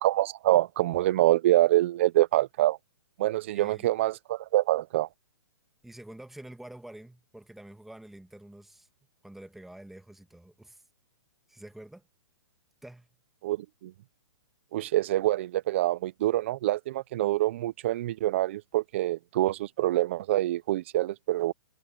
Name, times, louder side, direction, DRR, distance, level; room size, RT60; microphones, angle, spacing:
voice 1, 0.0-2.8 3.2-5.1 13.4-13.9 14.7-21.5, right 15 dB, 25° right, 0.3 m, -26 dB
voice 2, 3.5-3.9 5.8-8.9 9.2-10.8 11.5-12.1 12.8-13.1, right 1 dB, ahead, 1.6 m, -47 dB
hypercardioid pair, 165°, 15 cm